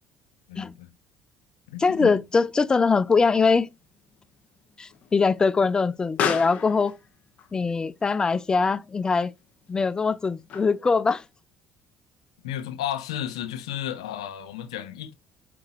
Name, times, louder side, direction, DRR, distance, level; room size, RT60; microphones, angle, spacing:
voice 1, 0.5-0.9 1.7-2.2 12.4-15.1, left 11 dB, 90° left, 0.6 m, -33 dB
voice 2, 1.8-3.7 4.8-7.0 7.5-9.3 9.7-11.2, left 4 dB, 25° left, 0.3 m, -22 dB
Explosion, 2.2-11.0, left 8 dB, 55° left, 1.0 m, -37 dB
4.5 x 3.7 x 2.9 m
hypercardioid pair, 65°, 3 cm